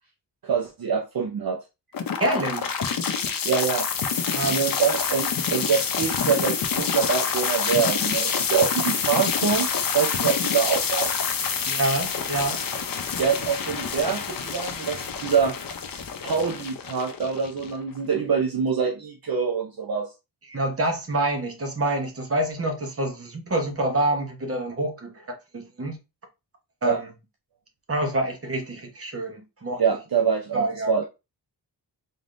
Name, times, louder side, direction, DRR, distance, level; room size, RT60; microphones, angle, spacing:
voice 1, 0.4-1.6 3.4-3.9 4.5-11.1 13.2-15.6 16.2-20.1 26.8-27.0 29.8-31.0, right 6 dB, 55° right, 0.6 m, -25 dB
sound 1, 1.9-18.0, left 6 dB, 55° left, 0.6 m, -27 dB
voice 2, 2.2-2.8 4.2-4.7 11.7-12.6 20.5-26.0 26.8-27.1 27.9-29.8 30.5-30.9, right 1 dB, 35° right, 1.0 m, -27 dB
4.0 x 3.5 x 2.5 m
wide cardioid pair, 135°, 42 cm